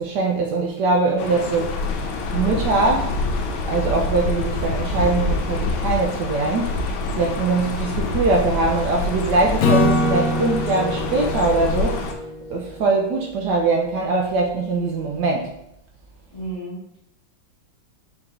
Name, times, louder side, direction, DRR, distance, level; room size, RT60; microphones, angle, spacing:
voice 1, 0.0-1.8 2.3-3.1 3.7-12.1 12.5-15.6, right 3 dB, 75° right, 0 dB, 1.1 m, -22 dB
sound 1, 1.2-12.1, left 2 dB, 85° left, 1.4 m, -26 dB
Acoustic guitar / Strum, 9.6-12.9, left 2 dB, 70° left, 0.8 m, -23 dB
voice 2, 16.3-17.0, right 2 dB, 20° left, -8 dB, 1.1 m, -33 dB
4.7 x 2.7 x 3.6 m, 0.78 s
omnidirectional pair, 2.1 m